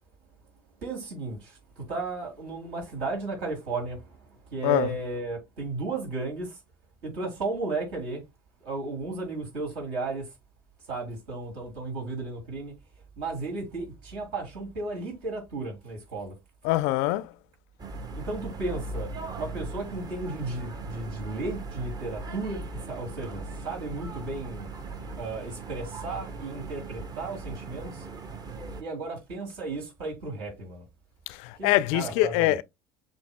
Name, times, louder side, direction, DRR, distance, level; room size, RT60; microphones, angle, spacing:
voice 1, 0.8-6.6 7.0-8.2 8.6-10.3 10.9-12.8 13.2-16.3 18.1-19.1 19.4-22.6 22.9-24.7 25.2-28.0 28.8-30.8 31.5-32.6, right 3 dB, 70° right, 3.0 m, -34 dB
voice 2, 16.6-17.3 31.3-32.6, left 16 dB, 70° left, 0.4 m, -24 dB
sound 1, 17.8-28.8, right 3 dB, 35° right, 1.0 m, -39 dB
7.3 x 2.7 x 2.2 m
hypercardioid pair, 70°, 12 cm